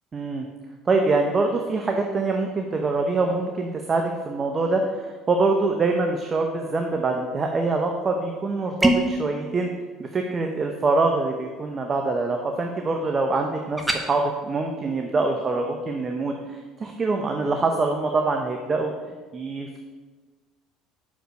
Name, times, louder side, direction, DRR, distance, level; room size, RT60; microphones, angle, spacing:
voice 1, 0.1-0.5 0.9-9.7 10.0-18.9 19.3-19.8, right 3 dB, 30° right, 3 dB, 0.9 m, -24 dB
sound 1, 8.8-9.2 13.8-14.0, right 1 dB, 5° right, 1.0 m, -21 dB
6.5 x 5.2 x 6.4 m, 1.4 s
supercardioid pair, 90°, 0 cm